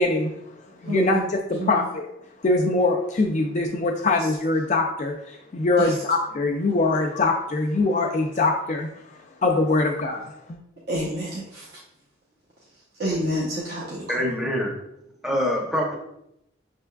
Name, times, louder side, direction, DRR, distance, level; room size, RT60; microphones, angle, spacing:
voice 1, 0.0-2.1 2.4-8.9 9.4-10.6, left 2 dB, 35° left, 2 dB, 0.4 m, -23 dB
voice 2, 0.9-1.2 1.6-1.8 5.8-5.9 10.9-11.6 13.0-14.2, right 1 dB, 50° right, -6 dB, 0.8 m, -28 dB
voice 3, 14.1-14.7 15.2-15.9, equal, ahead, -2 dB, 0.7 m, -24 dB
6.3 x 3.4 x 2.3 m, 0.80 s
head